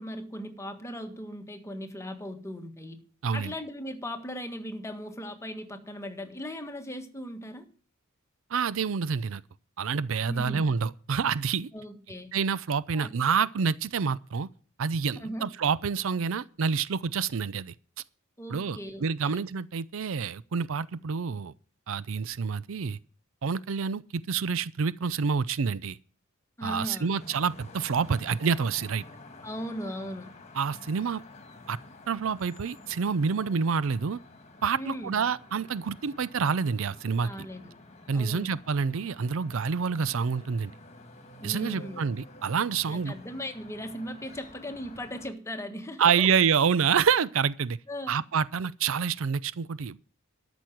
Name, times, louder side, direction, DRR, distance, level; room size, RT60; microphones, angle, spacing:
voice 1, 0.0-3.0 3.3-7.7 10.3-10.7 11.7-12.3 12.9-13.1 15.2-15.5 18.4-19.4 26.6-27.2 29.4-30.3 34.8-35.2 37.2-37.7 38.1-38.6 41.4-42.1 42.9-46.3 47.9-48.2, equal, 15° left, 1.5 m, -38 dB
voice 2, 8.5-9.4 9.8-11.7 12.3-14.5 14.8-17.7 18.5-21.5 21.9-23.0 23.4-26.0 26.6-29.0 30.6-31.2 31.7-31.8 32.1-34.2 34.6-37.3 38.1-40.7 41.4-43.1 46.0-47.8 48.1-50.0, right 6 dB, 70° right, 0.5 m, -27 dB
sound 1, 27.2-45.3, left 2 dB, 35° left, 1.8 m, -50 dB
13.0 x 6.2 x 9.1 m
head